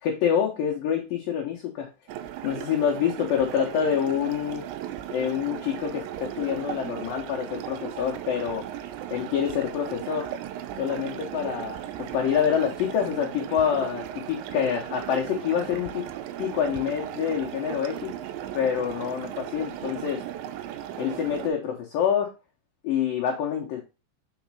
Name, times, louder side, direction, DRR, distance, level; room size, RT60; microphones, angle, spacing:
voice 1, 0.0-1.9 2.4-4.7 5.1-8.7 9.1-10.3 10.8-16.1 16.4-18.1 18.5-20.2 21.0-22.3 22.8-23.8, left 8 dB, 80° left, 0 dB, 2.0 m, -27 dB
sound 1, 2.1-21.5, right 11 dB, 80° right, 2.7 m, -36 dB
6.3 x 4.1 x 4.7 m, 0.29 s
omnidirectional pair, 5.3 m